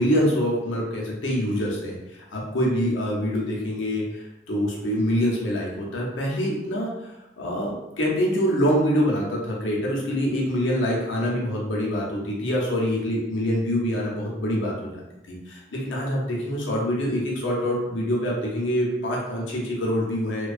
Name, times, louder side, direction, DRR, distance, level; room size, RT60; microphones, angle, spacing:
voice 1, 0.0-6.9 7.4-20.5, equal, 80° left, -3 dB, 0.6 m, -25 dB
2.5 x 2.2 x 2.4 m, 0.96 s
head